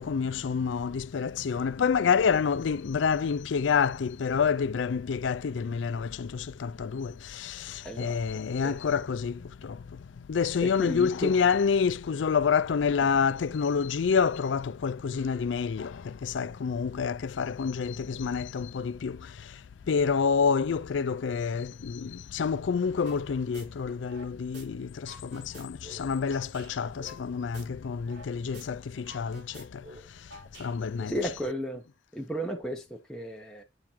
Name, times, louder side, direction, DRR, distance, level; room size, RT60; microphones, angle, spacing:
voice 1, 0.0-10.0 10.3-19.6 19.9-29.8 30.6-31.1, left 6 dB, 80° left, 0.4 m, -28 dB
voice 2, 7.8-8.2 8.6-8.7 10.6-11.3 12.9-13.0 31.1-31.8 32.1-33.6, equal, 5° left, 0.9 m, -34 dB
sound 1, 23.1-23.2 23.5-24.6 24.9-28.3 28.5-28.6 28.9-31.0, left 1 dB, 75° right, 4.3 m, -48 dB
8.7 x 3.7 x 4.5 m
head